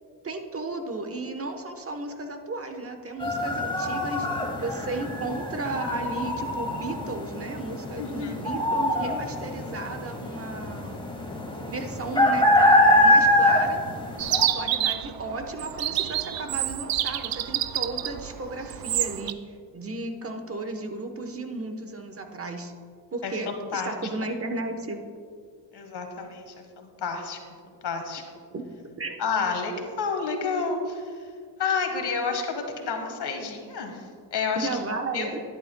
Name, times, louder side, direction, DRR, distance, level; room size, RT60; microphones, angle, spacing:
voice 1, 0.2-4.3 4.6-11.0 11.7-13.8 14.5-19.4 19.7-22.7 23.1-25.0 28.5-28.7 29.0-29.2 34.6-35.4, right 2 dB, 30° right, 6 dB, 1.0 m, -34 dB
sound 1, 3.2-14.5, left 1 dB, 10° left, 1.3 m, -24 dB
voice 2, 8.0-8.3 23.2-23.9 25.7-27.4 27.8-28.2 29.2-31.1 31.6-34.0 34.3-34.7 35.1-35.3, left 5 dB, 60° left, 4 dB, 1.5 m, -30 dB
Chirp tweet, 14.2-19.3, right 12 dB, 55° right, 0.5 m, -28 dB
11.5 x 10.0 x 2.2 m, 2.2 s
cardioid pair, 80°, 45 cm